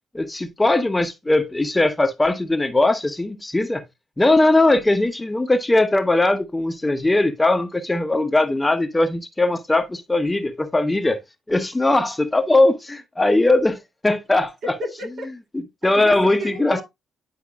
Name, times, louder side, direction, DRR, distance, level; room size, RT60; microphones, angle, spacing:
voice 1, 0.1-3.8 4.2-11.2 11.5-14.5 15.5-16.8, left 2 dB, 15° left, 0.9 m, -19 dB
voice 2, 14.6-15.3 15.9-16.8, right 1 dB, 60° right, 1.9 m, -32 dB
10.0 x 4.6 x 2.4 m
cardioid pair, 90°, 0 cm